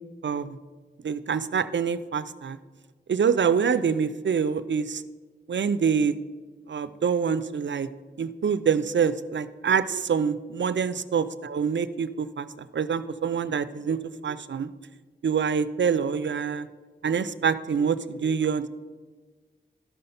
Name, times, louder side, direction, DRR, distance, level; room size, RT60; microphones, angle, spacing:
voice 1, 0.2-0.6 1.0-2.6 3.1-5.0 5.5-6.1 6.7-7.9 8.2-14.7 15.2-16.7 17.0-18.7, right 6 dB, 70° right, 14 dB, 0.4 m, -26 dB
12.0 x 5.4 x 5.6 m, 1.4 s
wide cardioid pair, 60°, 20 cm